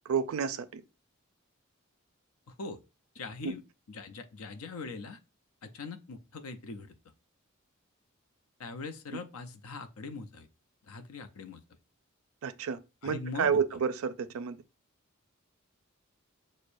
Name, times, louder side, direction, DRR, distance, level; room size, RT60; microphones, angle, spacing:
voice 1, 0.1-0.8 3.4-3.5 12.4-14.6, right 6 dB, 70° right, 0.4 m, -30 dB
voice 2, 2.5-2.8 3.1-3.6 3.9-5.2 5.6-7.0 8.6-10.5 10.8-11.6 13.0-13.6, left 3 dB, 85° left, 0.6 m, -41 dB
6.2 x 2.1 x 2.5 m
head